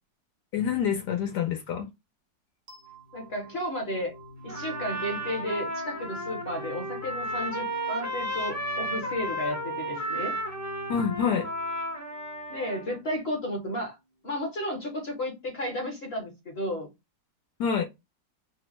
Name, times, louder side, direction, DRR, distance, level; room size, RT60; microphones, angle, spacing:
voice 1, 0.5-1.9 10.9-11.5 17.6-17.8, left 7 dB, 70° left, 1.1 m, -27 dB
sound 1, 2.7-13.6, left 1 dB, 75° right, 1.5 m, -47 dB
voice 2, 3.1-4.1 4.4-10.4 12.5-14.0 14.2-16.9, equal, 45° left, 0.9 m, -33 dB
Trumpet, 4.5-13.0, equal, 25° right, 0.4 m, -33 dB
3.4 x 2.1 x 3.0 m
omnidirectional pair, 2.0 m